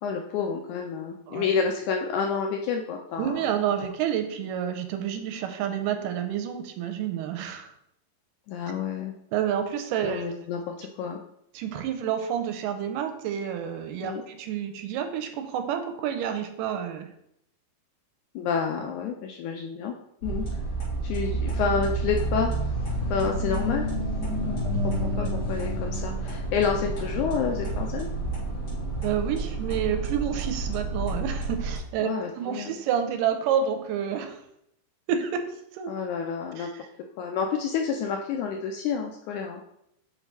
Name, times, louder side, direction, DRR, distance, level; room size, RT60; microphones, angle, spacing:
voice 1, 0.0-3.4 3.8-3.9 8.5-9.1 10.0-11.2 14.0-14.2 18.3-19.9 20.2-20.5 21.0-22.5 23.1-23.9 24.8-28.1 32.0-32.8 35.9-36.7 37.2-39.6, left 6 dB, 80° left, 2 dB, 1.8 m, -29 dB
voice 2, 3.2-7.7 9.3-10.4 11.5-17.1 25.2-25.3 29.0-32.1 32.4-34.4 35.1-35.9 36.6-36.7, right 9 dB, 80° right, 7 dB, 2.2 m, -29 dB
sound 1, 20.2-31.8, right 2 dB, 35° left, 2.3 m, -29 dB
5.6 x 4.0 x 4.6 m, 0.75 s
omnidirectional pair, 3.9 m